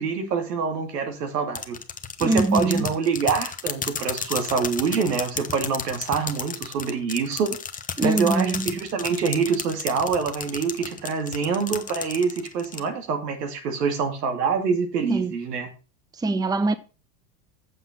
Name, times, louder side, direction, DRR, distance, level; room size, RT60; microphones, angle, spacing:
voice 1, 0.0-1.8 2.2-7.6 8.0-15.7, right 5 dB, 80° right, 2.7 m, -25 dB
sound 1, 1.6-12.8, left 6 dB, 15° left, 1.1 m, -32 dB
voice 2, 2.2-2.9 8.0-8.8 15.1-15.3 16.1-16.7, right 2 dB, 10° right, 0.7 m, -23 dB
8.0 x 7.2 x 5.8 m
hypercardioid pair, 90°, 47 cm